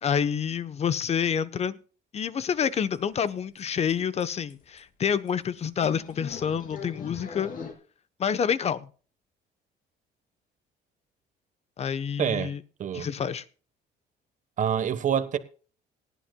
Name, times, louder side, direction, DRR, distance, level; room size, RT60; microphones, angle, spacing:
voice 1, 0.0-1.8 2.1-7.5 8.2-8.9 11.8-12.6 12.9-13.4, left 7 dB, 40° left, 0.9 m, -28 dB
sound 1, 2.6-2.7 2.9-3.3 3.6-3.7 3.9-4.0 4.2-4.3 4.5-4.8 5.3-5.4 5.8-7.7, left 6 dB, 55° left, 2.8 m, -40 dB
voice 2, 12.2-12.5 12.8-13.1 14.6-15.4, right 8 dB, 50° right, 1.2 m, -26 dB
18.5 x 11.5 x 2.3 m
cardioid pair, 110°, 17 cm